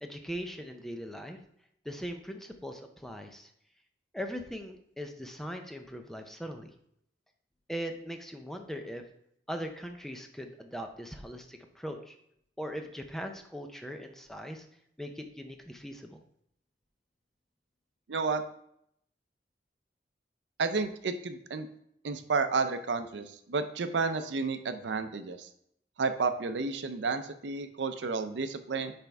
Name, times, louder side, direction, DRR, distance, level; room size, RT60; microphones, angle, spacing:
voice 1, 0.0-1.4 1.8-3.5 4.1-6.7 7.7-9.0 9.5-12.2 12.6-14.7 15.0-16.2, equal, ahead, 5 dB, 0.5 m, -40 dB
voice 2, 18.1-18.5 20.6-21.7 22.0-25.5 26.0-28.9, right 4 dB, 85° right, 9 dB, 0.5 m, -31 dB
10.0 x 3.5 x 3.4 m, 0.72 s
head